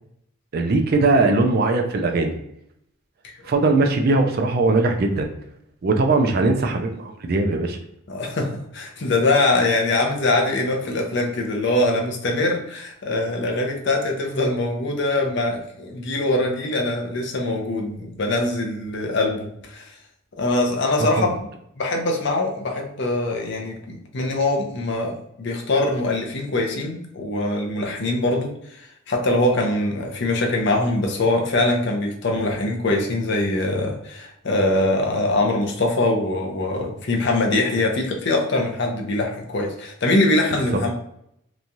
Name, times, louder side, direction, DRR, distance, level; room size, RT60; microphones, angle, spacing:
voice 1, 0.5-2.3 3.4-5.3 5.8-7.8 21.0-21.3, right 3 dB, 45° right, 5 dB, 0.3 m, -20 dB
voice 2, 8.1-19.9 20.3-21.5 21.8-40.9, left 2 dB, 55° left, 1 dB, 0.5 m, -23 dB
3.0 x 2.3 x 2.6 m, 0.75 s
head